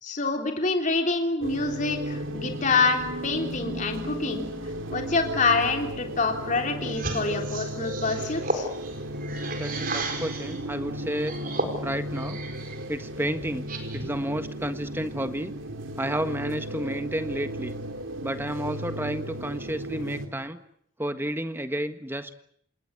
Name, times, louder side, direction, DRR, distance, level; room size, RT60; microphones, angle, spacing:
voice 1, 0.0-4.5 4.9-8.7, left 3 dB, 40° left, 3 dB, 3.5 m, -26 dB
sound 1, 1.4-20.3, equal, 75° right, 3.2 m, -35 dB
sound 2, 6.9-10.6 11.1-12.8 13.2-14.2, right 2 dB, 45° right, 4.6 m, -34 dB
voice 2, 9.6-11.4 11.8-12.4 12.9-13.6 13.9-15.5 16.0-17.7 18.2-20.6 21.0-22.3, right 1 dB, 10° right, 9 dB, 1.5 m, -31 dB
28.5 x 19.5 x 8.3 m, 0.68 s
head